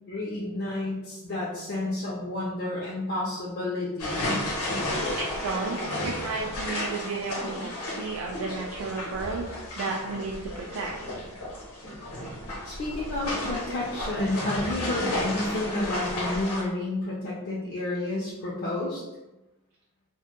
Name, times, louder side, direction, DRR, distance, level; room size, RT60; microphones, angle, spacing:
voice 1, 0.1-4.3 12.6-19.0, left 2 dB, 45° left, -5 dB, 0.4 m, -30 dB
sound 1, 4.0-16.6, left 1 dB, 75° left, 0.7 m, -33 dB
voice 2, 5.1-10.9, right 4 dB, 60° right, 0 dB, 0.3 m, -33 dB
2.1 x 2.1 x 2.9 m, 1.0 s
head